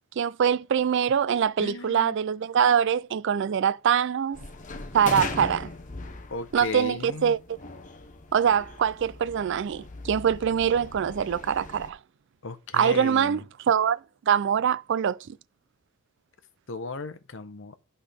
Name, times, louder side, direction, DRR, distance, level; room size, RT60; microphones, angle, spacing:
voice 1, 0.2-4.4 4.9-5.7 6.5-7.4 8.3-12.0 12.7-14.0 14.3-15.4, right 8 dB, 55° right, 0.3 m, -24 dB
voice 2, 1.6-2.2 5.4-5.5 6.3-7.3 12.4-13.4 16.7-17.7, left 3 dB, 60° left, 0.9 m, -36 dB
sound 1, 4.3-11.9, left 3 dB, 35° left, 1.0 m, -39 dB
11.5 x 5.6 x 3.5 m
head